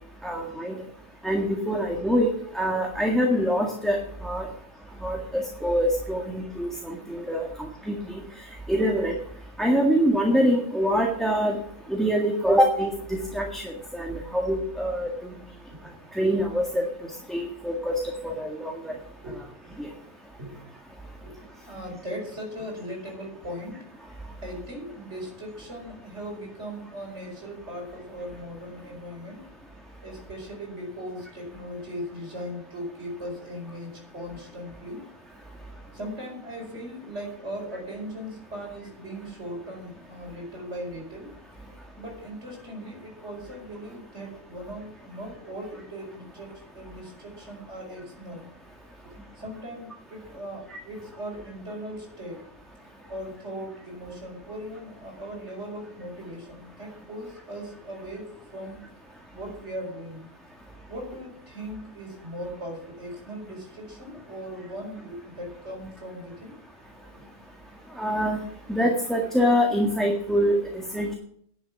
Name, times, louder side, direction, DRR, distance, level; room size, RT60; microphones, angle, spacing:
voice 1, 0.2-0.7 1.2-4.5 5.0-7.5 7.8-7.9 8.7-9.1 9.6-11.6 11.9-15.1 16.1-16.8 17.3-18.9 19.8-19.9 50.7-50.8 68.0-68.4 68.7-70.6 70.9-71.1, equal, ahead, 0 dB, 1.7 m, -24 dB
voice 2, 21.7-23.8 24.4-29.4 30.0-35.0 35.9-41.3 42.0-48.5 49.0-52.4 53.1-58.9 59.3-60.3 60.9-66.5, equal, 60° right, -1 dB, 5.2 m, -38 dB
11.0 x 8.1 x 7.0 m, 0.65 s
omnidirectional pair, 1.3 m